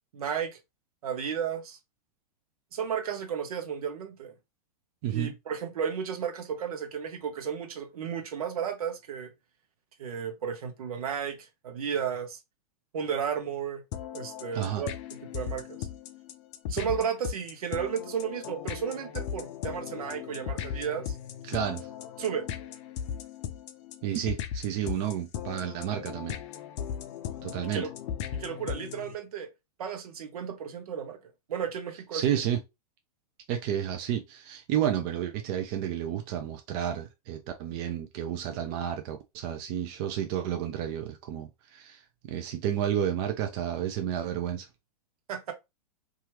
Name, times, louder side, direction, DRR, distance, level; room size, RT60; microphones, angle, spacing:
voice 1, 0.1-0.6 1.0-1.8 2.7-4.3 5.1-9.3 10.0-12.4 12.9-13.8 14.1-15.8 16.7-21.2 22.2-22.5 27.7-27.9 28.3-29.5 29.8-31.2 31.5-32.4 45.3-45.5, right 7 dB, 65° right, 0.8 m, -33 dB
sound 1, 13.9-29.1, left 9 dB, 50° left, 0.4 m, -37 dB
voice 2, 21.4-21.9 24.0-26.4 27.4-27.9 32.1-32.6 33.5-44.7, right 10 dB, 40° right, 0.5 m, -31 dB
2.8 x 2.4 x 2.8 m
hypercardioid pair, 110°, 20 cm